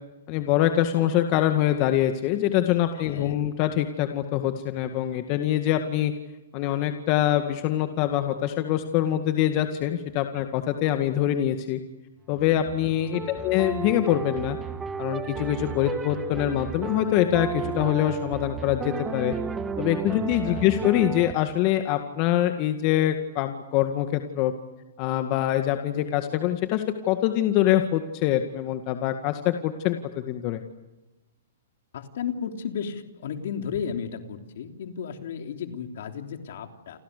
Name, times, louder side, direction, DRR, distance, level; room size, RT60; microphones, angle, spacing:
voice 1, 0.3-6.1 6.5-11.8 12.3-14.6 15.0-19.3 19.8-24.5 25.0-30.6, left 12 dB, 40° left, 7 dB, 2.0 m, -24 dB
voice 2, 2.9-3.4 13.1-13.4 20.1-20.7 31.9-37.0, left 7 dB, 65° left, 5 dB, 3.3 m, -34 dB
sound 1, 12.3-21.3, right 5 dB, 15° right, 1.7 m, -33 dB
29.5 x 25.0 x 6.8 m, 1.1 s
hypercardioid pair, 140°, 0 cm